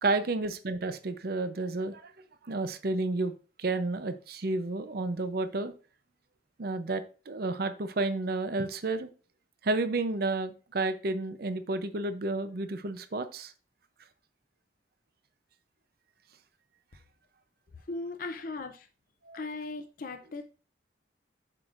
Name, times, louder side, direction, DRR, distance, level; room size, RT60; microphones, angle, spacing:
voice 1, 0.0-2.1 2.4-3.3 3.6-5.7 6.6-9.1 9.6-13.5 19.2-19.4, right 2 dB, 55° right, 11 dB, 0.6 m, -31 dB
voice 2, 17.9-18.9 19.3-20.4, left 3 dB, 50° left, 6 dB, 0.5 m, -38 dB
7.5 x 6.3 x 2.5 m, 0.36 s
head